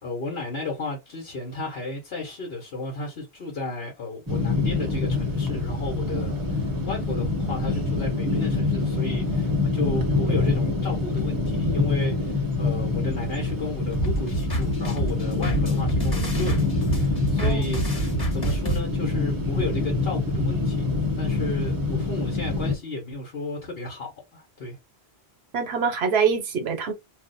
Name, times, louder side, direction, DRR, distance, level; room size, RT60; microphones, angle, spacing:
voice 1, 0.0-20.8 21.2-24.8, left 2 dB, 70° left, 1.2 m, -33 dB
sound 1, 4.3-22.8, left 3 dB, 20° right, 0.8 m, -26 dB
sound 2, 13.9-18.8, right 2 dB, 20° left, 1.4 m, -27 dB
voice 2, 25.5-26.9, right 6 dB, 75° right, 1.0 m, -24 dB
2.6 x 2.1 x 3.9 m
omnidirectional pair, 1.1 m